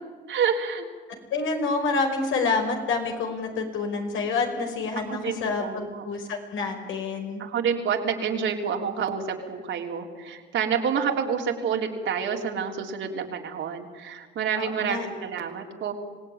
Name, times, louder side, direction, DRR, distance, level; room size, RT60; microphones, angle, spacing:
voice 1, 0.3-0.9 5.0-6.1 7.4-15.9, right 6 dB, 75° right, 2 dB, 3.8 m, -28 dB
voice 2, 1.3-7.4 14.6-15.1, left 4 dB, 80° left, 3 dB, 5.1 m, -28 dB
26.0 x 17.5 x 9.7 m, 1.5 s
cardioid pair, 90°, 20 cm